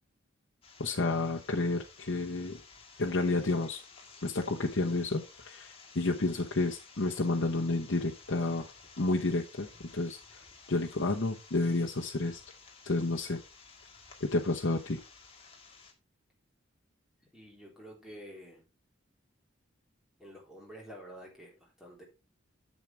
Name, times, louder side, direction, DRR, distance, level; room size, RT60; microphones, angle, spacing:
sound 1, 0.6-15.9, left 4 dB, 30° left, 1.8 m, -54 dB
voice 1, 0.8-2.6 3.0-3.8 4.2-8.7 9.0-9.7 9.9-10.2 10.7-12.4 12.8-13.4 14.2-15.0, left 2 dB, 65° left, -1 dB, 1.0 m, -30 dB
voice 2, 17.3-18.6 20.2-22.0, equal, 5° right, -3 dB, 3.8 m, -49 dB
11.0 x 7.4 x 3.4 m, 0.27 s
head